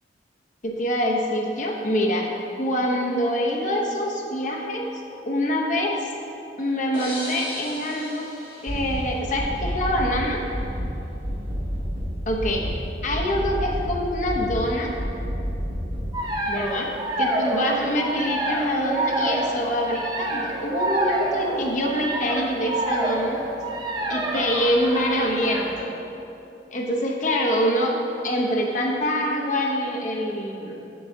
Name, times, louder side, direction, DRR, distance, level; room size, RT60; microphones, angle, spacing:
voice 1, 0.6-2.3 2.6-6.1 6.6-8.3 8.6-10.4 12.3-12.7 13.0-15.0 16.5-16.9 17.2-23.4 24.1-25.9 26.7-28.0 28.2-30.7, equal, 45° left, -1 dB, 0.8 m, -25 dB
sound 1, 6.9-9.7, left 1 dB, 25° left, 1.3 m, -37 dB
sound 2, 8.7-9.1 9.4-10.2 10.5-10.9 11.2-12.1 12.4-12.8 13.1-14.0 14.3-14.7 15.0-16.1, equal, 60° right, 1.5 m, -29 dB
sound 3, 16.1-25.8, right 1 dB, 20° right, 0.5 m, -27 dB
7.6 x 7.0 x 2.7 m, 2.9 s
head